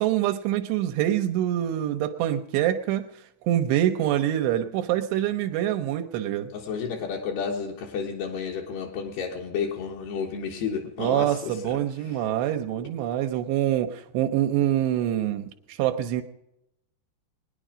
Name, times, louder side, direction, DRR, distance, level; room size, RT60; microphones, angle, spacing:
voice 1, 0.0-3.1 3.4-6.5 11.0-16.2, right 12 dB, 85° right, 6 dB, 2.9 m, -25 dB
voice 2, 6.5-11.5, left 6 dB, 75° left, -1 dB, 3.4 m, -31 dB
20.0 x 10.0 x 5.0 m, 0.85 s
omnidirectional pair, 4.9 m